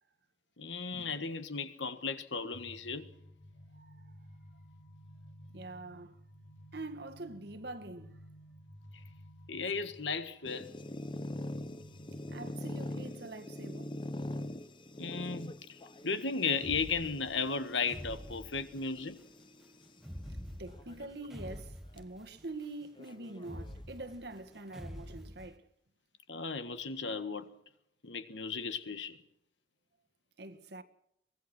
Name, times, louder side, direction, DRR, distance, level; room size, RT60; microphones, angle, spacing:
voice 1, 0.6-3.1 9.5-10.7 15.0-15.8 16.0-19.2 26.3-27.5 28.0-29.2, left 5 dB, 75° left, 1.7 m, -35 dB
sound 1, 2.5-12.5, equal, 45° left, 2.6 m, -55 dB
voice 2, 5.5-6.2 6.7-8.2 12.3-14.0 20.6-25.6 30.4-30.8, right 2 dB, 60° right, 1.8 m, -45 dB
sound 2, 10.4-19.9 20.7-21.2 21.6-21.7 22.0-22.1 23.0-24.1, left 1 dB, 25° left, 0.9 m, -43 dB
sound 3, 16.6-19.1 20.0-22.6 23.4-25.6, equal, ahead, 1.5 m, -46 dB
24.0 x 19.0 x 6.1 m
head